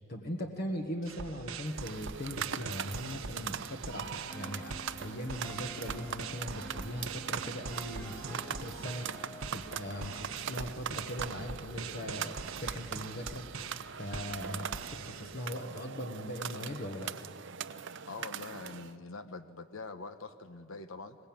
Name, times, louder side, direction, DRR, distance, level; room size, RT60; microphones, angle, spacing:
voice 1, 0.1-9.1 9.5-12.3 12.6-13.5 14.0-17.1, equal, 50° left, 3 dB, 1.5 m, -40 dB
sound 1, 1.1-15.8, right 5 dB, 80° right, 1.2 m, -43 dB
sound 2, 1.6-18.9, right 7 dB, 60° right, 0.7 m, -42 dB
sound 3, 4.3-10.1, right 1 dB, 15° left, 2.2 m, -50 dB
voice 2, 18.1-21.2, left 3 dB, 70° left, 10 dB, 1.1 m, -44 dB
22.5 x 20.0 x 8.8 m, 2.4 s
head